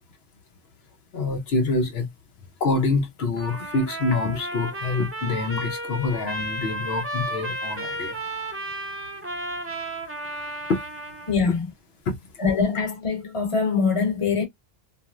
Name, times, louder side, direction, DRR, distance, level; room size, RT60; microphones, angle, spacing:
voice 1, 1.1-2.1 2.6-8.2 10.7-10.8 12.1-12.2, left 3 dB, 75° left, 0.9 m, -26 dB
Trumpet, 3.3-11.4, right 1 dB, 15° right, 0.6 m, -33 dB
voice 2, 11.3-11.7 12.4-14.4, left 5 dB, 30° left, 1.0 m, -23 dB
2.9 x 2.5 x 2.3 m
omnidirectional pair, 1.0 m